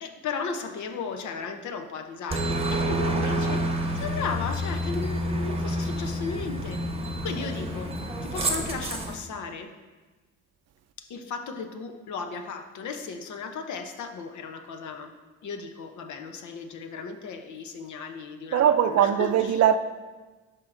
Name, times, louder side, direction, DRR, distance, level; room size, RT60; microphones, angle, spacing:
voice 1, 0.0-3.7 3.9-8.0 8.2-9.7 11.0-15.1 15.4-19.6, left 5 dB, 70° left, 0.8 m, -35 dB
Aircraft, 2.3-9.1, right 1 dB, 20° right, 0.9 m, -28 dB
voice 2, 18.5-19.8, right 10 dB, 55° right, 0.4 m, -20 dB
12.0 x 4.6 x 2.5 m
cardioid pair, 90°, 30 cm